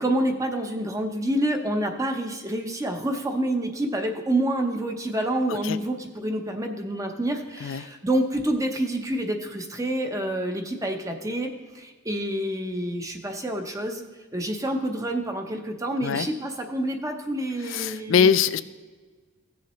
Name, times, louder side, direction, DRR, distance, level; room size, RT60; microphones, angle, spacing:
voice 1, 0.0-14.0 14.3-18.3, right 1 dB, 15° right, 4 dB, 0.7 m, -28 dB
voice 2, 17.7-18.6, left 7 dB, 65° left, 15 dB, 0.4 m, -22 dB
16.0 x 7.1 x 3.1 m, 1.4 s
head